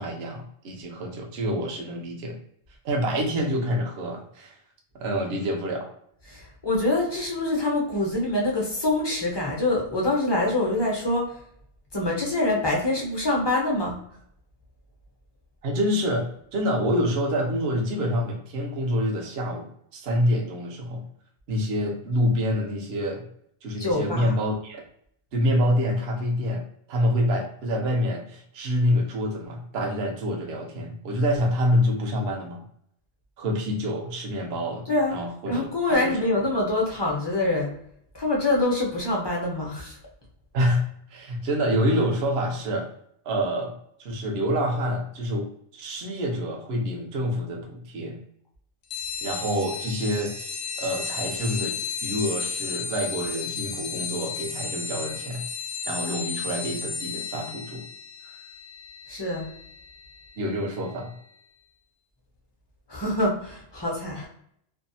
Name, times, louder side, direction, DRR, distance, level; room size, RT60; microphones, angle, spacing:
voice 1, 0.0-2.4 2.8-4.6 5.0-5.9 15.6-21.0 21.5-23.2 23.6-24.8 25.3-32.6 33.4-34.9 35.1-36.1 40.5-42.9 43.2-43.7 44.0-45.5 45.7-48.2 49.2-51.8 52.0-55.4 55.9-57.8 60.4-61.1, equal, 70° right, 2 dB, 0.9 m, -27 dB
voice 2, 6.3-11.3 11.9-14.0 23.8-24.3 34.9-35.1 35.5-37.7 38.1-40.0 59.1-59.5 62.9-64.3, left 2 dB, 25° left, -2 dB, 0.7 m, -25 dB
sound 1, 48.9-61.0, left 5 dB, 70° left, 0.8 m, -34 dB
2.6 x 2.3 x 2.7 m, 0.68 s
omnidirectional pair, 1.1 m